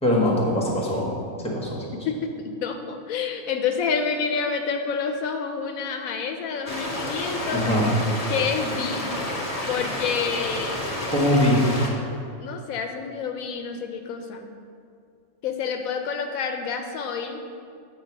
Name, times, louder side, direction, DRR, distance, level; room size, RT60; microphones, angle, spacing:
voice 1, 0.0-1.1 1.5-1.8 7.5-7.8 11.1-11.6, left 1 dB, 5° left, -3 dB, 1.1 m, -21 dB
voice 2, 2.0-7.6 8.3-9.1 9.7-10.9 12.4-14.5 15.4-17.4, left 6 dB, 85° left, 5 dB, 1.0 m, -28 dB
sound 1, 6.7-11.9, left 1 dB, 30° left, 0.9 m, -30 dB
7.8 x 3.8 x 5.9 m, 2.3 s
omnidirectional pair, 1.5 m